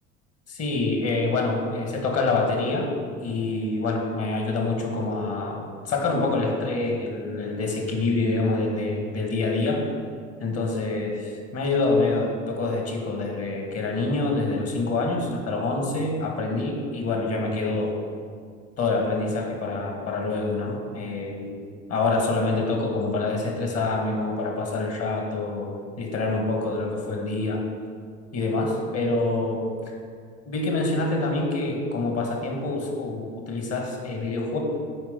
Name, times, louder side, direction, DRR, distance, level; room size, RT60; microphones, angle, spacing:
voice 1, 0.5-2.9 3.2-9.8 10.4-18.0 18.8-21.6 21.9-27.6 28.3-29.7 30.4-34.6, left 3 dB, 40° left, 1 dB, 1.6 m, -26 dB
8.0 x 4.9 x 3.7 m, 2.1 s
figure-of-eight pair, 65°, 40 cm